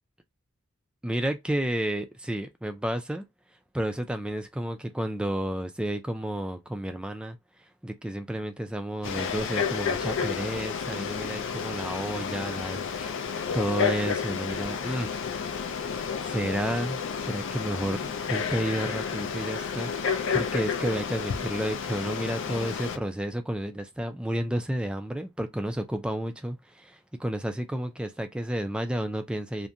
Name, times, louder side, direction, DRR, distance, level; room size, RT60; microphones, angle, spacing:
voice 1, 1.0-3.2 3.7-7.4 7.8-15.2 16.2-29.7, right 1 dB, 5° right, 0.3 m, -31 dB
Frog, 9.0-23.0, left 6 dB, 60° left, 0.4 m, -31 dB
2.5 x 2.2 x 2.6 m
head